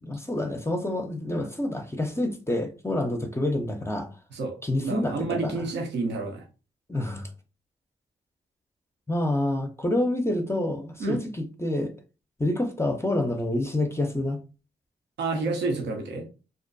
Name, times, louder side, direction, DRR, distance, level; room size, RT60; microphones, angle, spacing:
voice 1, 0.0-4.1 4.6-5.6 6.9-7.3 9.1-11.9 12.4-14.4, left 1 dB, 15° left, 0.6 m, -27 dB
voice 2, 4.8-6.5 11.0-11.2 15.2-16.3, right 3 dB, 80° right, 0.7 m, -29 dB
2.5 x 2.1 x 2.5 m
supercardioid pair, 40°, 18 cm